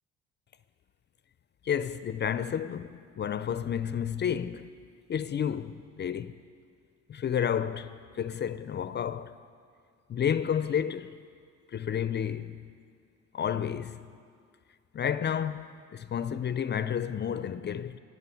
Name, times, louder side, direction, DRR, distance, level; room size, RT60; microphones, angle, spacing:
voice 1, 1.6-4.7 5.1-6.4 7.1-9.4 10.1-11.2 11.7-12.7 13.3-14.1 14.9-18.0, left 8 dB, 35° left, 0.4 m, -31 dB
13.0 x 6.2 x 9.0 m
cardioid pair, 90°, 30 cm